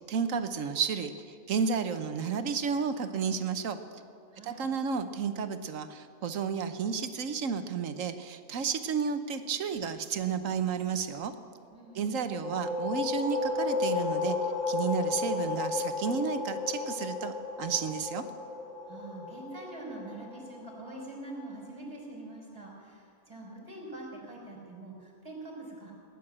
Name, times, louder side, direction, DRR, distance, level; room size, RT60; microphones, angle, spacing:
voice 1, 0.1-1.1 1.5-3.8 4.4-11.3 11.9-14.4 14.7-18.2, right 6 dB, 65° right, 9 dB, 1.2 m, -32 dB
voice 2, 4.3-4.7 11.7-12.2 18.9-25.9, right 2 dB, 15° right, -2 dB, 4.2 m, -44 dB
sound 1, 12.1-21.6, left 4 dB, 25° left, 1.8 m, -33 dB
18.0 x 10.0 x 7.4 m, 2.3 s
omnidirectional pair, 1.5 m